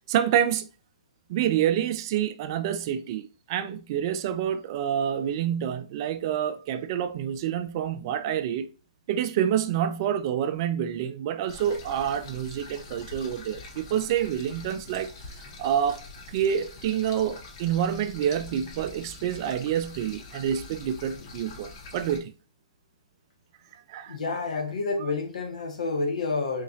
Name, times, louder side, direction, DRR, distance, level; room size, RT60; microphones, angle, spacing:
voice 1, 0.1-0.7 1.3-8.7 9.1-15.1 15.6-22.3 23.9-24.2, right 9 dB, 35° right, 0.3 m, -27 dB
sound 1, 11.5-22.2, left 3 dB, 40° left, 0.7 m, -44 dB
voice 2, 24.1-26.6, left 3 dB, 70° left, 1.2 m, -29 dB
3.9 x 2.9 x 2.7 m
hypercardioid pair, 145°, 4 cm